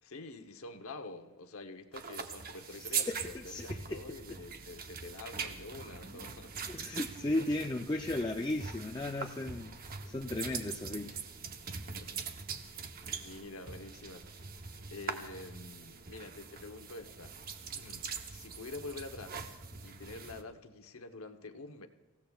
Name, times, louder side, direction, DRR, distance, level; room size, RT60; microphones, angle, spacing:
voice 1, 0.0-6.5 7.4-7.5 11.9-12.1 13.2-14.4 14.9-17.4 17.6-21.9, left 3 dB, 85° left, 7 dB, 0.9 m, -47 dB
sound 1, 1.9-20.4, right 5 dB, 45° right, 0.8 m, -42 dB
voice 2, 2.8-3.2 3.5-4.0 6.7-11.2, left 2 dB, 20° left, 1 dB, 0.4 m, -35 dB
25.5 x 15.5 x 2.4 m, 1.1 s
head